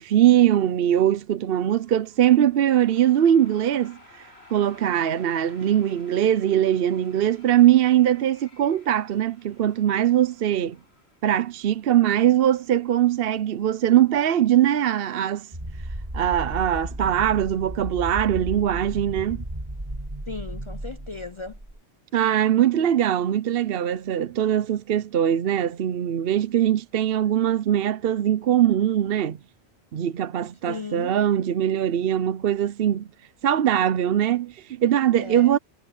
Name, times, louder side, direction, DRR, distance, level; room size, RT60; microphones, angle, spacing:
voice 1, 0.0-4.0 4.5-10.8 11.2-15.5 16.1-19.4 22.1-29.4 29.9-33.1 33.4-35.6, right 11 dB, 65° right, 0.8 m, -21 dB
sound 1, 1.7-13.2, left 2 dB, 75° left, 7.8 m, -55 dB
sound 2, 15.5-21.8, right 1 dB, 25° right, 2.6 m, -34 dB
voice 2, 20.3-21.6 30.7-31.1 35.2-35.5, left 4 dB, 40° left, 0.5 m, -36 dB
omnidirectional pair, 1.1 m